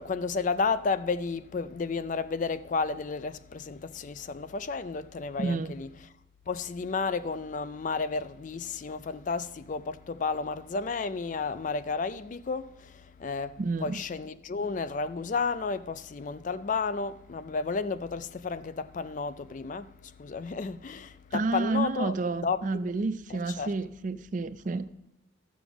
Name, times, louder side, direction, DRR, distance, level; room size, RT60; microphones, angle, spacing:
voice 1, 0.0-6.0 6.5-22.1 22.4-22.8 23.3-23.7, left 4 dB, 40° left, 0.3 m, -32 dB
voice 2, 5.4-5.8 13.6-14.0 21.3-24.9, right 3 dB, 40° right, 0.4 m, -30 dB
12.5 x 7.1 x 5.9 m
head